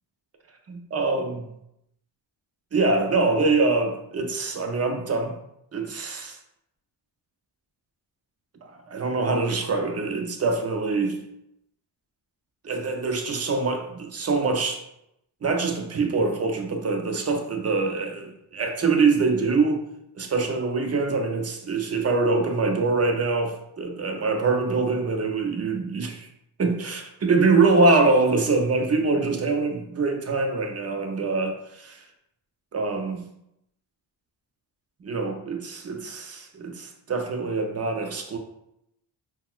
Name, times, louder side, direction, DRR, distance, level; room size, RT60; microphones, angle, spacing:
voice 1, 0.7-1.5 2.7-5.4 5.7-6.4 8.6-11.2 12.6-14.8 15.4-19.8 20.1-26.3 26.6-32.0 32.7-33.3 35.0-38.4, right 3 dB, 30° right, 4 dB, 0.5 m, -24 dB
4.0 x 2.2 x 2.3 m, 0.80 s
cardioid pair, 65°, 50 cm